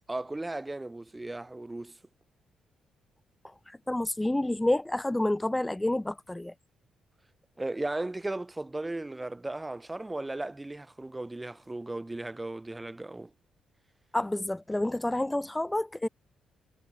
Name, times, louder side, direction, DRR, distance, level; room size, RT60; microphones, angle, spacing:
voice 1, 0.1-1.9 7.6-13.3, right 2 dB, 15° right, 4.1 m, -36 dB
voice 2, 3.4-6.5 14.1-16.1, left 1 dB, 10° left, 1.0 m, -29 dB
supercardioid pair, 70°, 0 cm